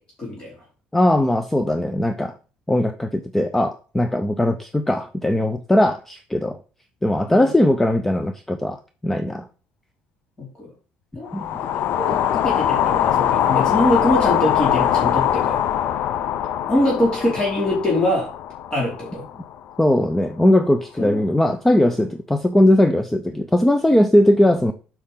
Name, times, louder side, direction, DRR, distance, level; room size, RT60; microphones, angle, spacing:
voice 1, 0.2-0.5 7.3-7.5 10.4-10.7 11.1-11.3 11.9-15.6 16.7-18.3 18.7-19.2 21.0-21.2 21.8-21.9, left 1 dB, 20° left, -2 dB, 2.7 m, -23 dB
voice 2, 0.9-2.3 2.7-6.6 7.0-9.5 11.3-11.5 19.8-24.7, left 1 dB, 5° left, 9 dB, 0.5 m, -19 dB
sound 1, 11.3-19.5, left 10 dB, 60° left, 0.5 m, -22 dB
8.5 x 5.8 x 3.8 m, 0.38 s
cardioid pair, 150°, 4 cm